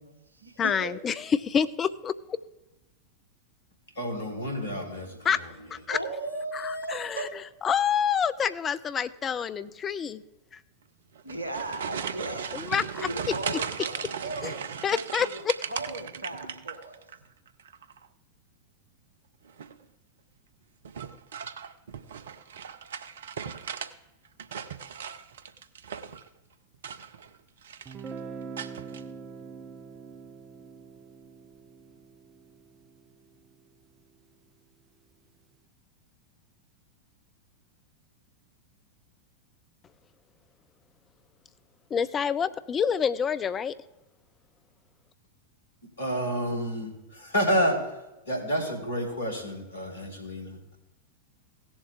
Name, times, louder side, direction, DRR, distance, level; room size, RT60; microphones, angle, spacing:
voice 1, 0.0-0.9 5.9-7.3 11.2-15.4 15.7-17.0, right 2 dB, 80° right, 6 dB, 1.3 m, -37 dB
voice 2, 0.6-2.4 5.2-5.4 5.7-6.0 6.5-7.3 7.6-10.2 12.5-13.1 14.4-14.5 14.8-15.6 41.9-43.8, left 7 dB, 25° left, 13 dB, 0.5 m, -27 dB
voice 3, 3.9-5.5 46.0-48.0 48.3-50.8, equal, 70° left, 3 dB, 2.4 m, -29 dB
sound 1, 11.2-17.2 17.5-18.1 19.5-19.9 20.9-23.9 24.3-26.3 26.7-27.4 27.6-28.1 28.6-29.0, right 7 dB, 65° right, 0.6 m, -37 dB
Guitar, 27.9-33.6, right 5 dB, 25° right, 0.6 m, -44 dB
17.0 x 7.2 x 3.5 m, 0.97 s
figure-of-eight pair, 90°, 0 cm